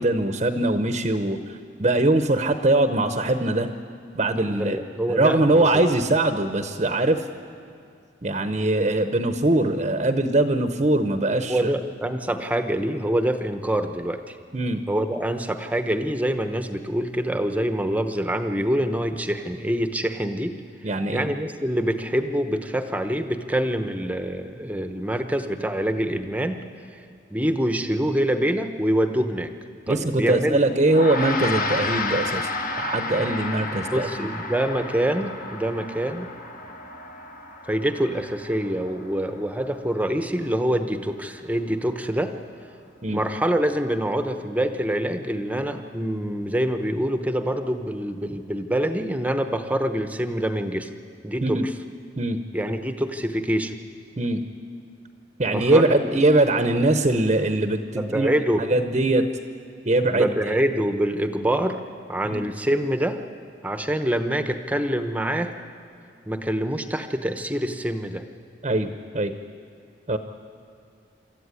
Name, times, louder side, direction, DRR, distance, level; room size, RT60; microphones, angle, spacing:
voice 1, 0.0-3.7 4.1-4.8 5.1-7.2 8.2-11.7 14.5-14.8 20.8-21.3 29.9-32.5 32.8-34.3 43.0-43.2 51.4-51.7 52.2-52.4 54.2-54.4 55.4-58.3 58.7-59.3 59.8-60.5 62.2-62.5 68.6-69.3 70.1-70.2, right 2 dB, 35° right, 8 dB, 0.8 m, -22 dB
voice 2, 4.5-5.9 11.5-14.4 14.9-20.6 21.1-26.6 26.9-27.0 27.3-29.5 29.9-30.6 33.9-36.3 37.6-42.3 43.1-50.9 51.2-51.6 52.5-53.7 55.5-56.1 58.0-58.7 60.1-61.8 62.1-63.2 63.6-65.5 66.3-68.2, right 1 dB, 10° right, 8 dB, 0.9 m, -25 dB
Gong, 30.9-40.5, left 3 dB, 45° left, 1.5 m, -32 dB
26.0 x 13.5 x 9.8 m, 2.3 s
head